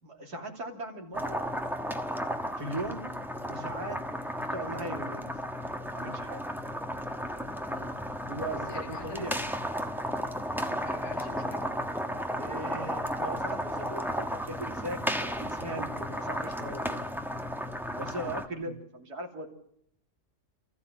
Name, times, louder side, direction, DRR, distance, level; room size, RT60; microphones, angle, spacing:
voice 1, 0.0-1.5 2.6-3.1 3.5-4.0 4.5-5.3 5.7-6.4 8.3-9.4 12.4-17.1 17.9-19.5, right 1 dB, 85° right, 2 dB, 3.5 m, -39 dB
sound 1, 1.1-18.5, equal, ahead, 1.1 m, -34 dB
voice 2, 7.7-9.4 10.6-11.7 18.1-18.8, left 4 dB, 85° left, 4 dB, 2.3 m, -47 dB
27.5 x 15.0 x 7.4 m, 0.72 s
omnidirectional pair, 1.6 m